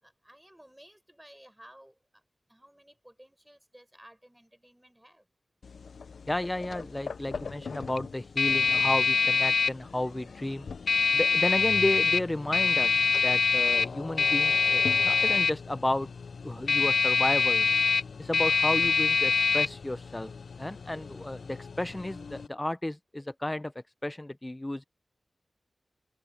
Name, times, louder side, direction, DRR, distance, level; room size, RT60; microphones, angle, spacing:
voice 1, 0.0-2.2 2.5-5.3, equal, 10° right, 5.2 m, -55 dB
sound 1, 5.6-22.5, left 5 dB, 85° left, 0.3 m, -26 dB
voice 2, 6.3-10.7 11.1-16.1 16.4-17.7 18.2-20.3 20.6-23.7 24.0-24.8, left 1 dB, 20° left, 0.4 m, -32 dB
wide cardioid pair, 85°, 0 cm